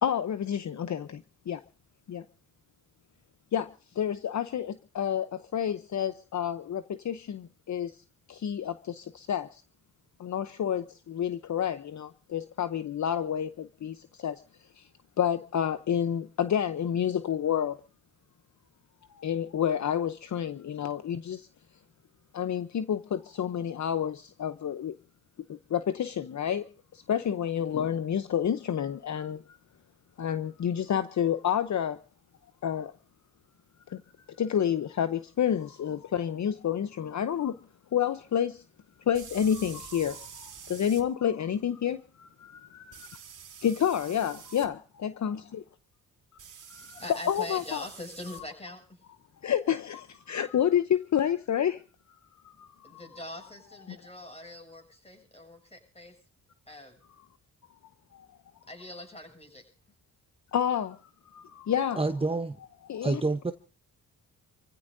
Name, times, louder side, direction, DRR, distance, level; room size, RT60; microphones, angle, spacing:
voice 1, 0.0-1.6 2.1-2.2 3.5-3.7 3.9-8.0 8.3-9.6 10.2-14.4 14.8-14.9 15.2-17.8 19.1-21.5 22.3-25.0 25.5-26.7 26.9-29.4 30.2-32.0 32.6-32.9 33.9-34.0 34.3-37.5 37.9-38.6 39.1-43.1 43.6-45.4 46.8-47.8 49.4-51.8 52.4-53.0 53.9-54.0 58.1-58.3 60.5-62.0 62.9-63.2, left 9 dB, 50° left, 0.8 m, -29 dB
sound 1, 35.7-35.8 39.1-41.0 42.9-44.7 46.4-48.4, right 7 dB, 55° right, 2.2 m, -47 dB
voice 2, 46.9-48.8 52.8-56.1 56.7-57.0 58.7-59.6, left 1 dB, 15° left, 7.5 m, -43 dB
voice 3, 62.0-62.6 63.0-63.5, right 3 dB, 15° right, 0.9 m, -28 dB
28.5 x 15.5 x 2.7 m
cardioid pair, 80°, 36 cm